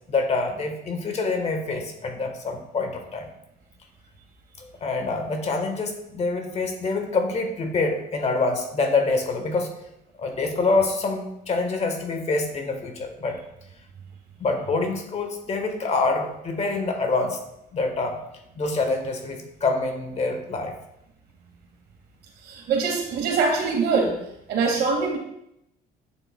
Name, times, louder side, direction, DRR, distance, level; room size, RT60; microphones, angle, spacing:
voice 1, 0.1-3.3 4.6-9.7 10.2-13.4 14.4-17.4 17.7-18.2 18.6-20.7, left 3 dB, 40° left, 4 dB, 1.4 m, -26 dB
voice 2, 22.4-24.2 24.5-25.2, right 4 dB, 75° right, 2 dB, 1.9 m, -23 dB
8.9 x 7.0 x 2.3 m, 0.81 s
cardioid pair, 110°, 17 cm